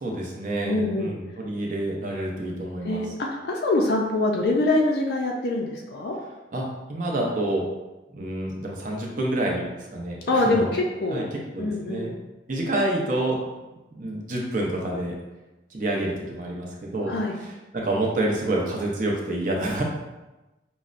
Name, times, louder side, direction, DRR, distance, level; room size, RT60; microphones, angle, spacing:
voice 1, 0.0-3.0 6.5-7.7 8.1-10.7 11.1-11.2 11.5-12.1 12.5-13.4 13.9-15.1 15.7-17.1 17.7-19.8, right 1 dB, 45° right, -2 dB, 0.6 m, -28 dB
voice 2, 0.6-1.1 2.8-6.2 10.3-11.2 11.6-12.1 17.1-17.3, left 2 dB, 60° left, 0 dB, 0.4 m, -24 dB
5.3 x 2.1 x 2.5 m, 1.1 s
head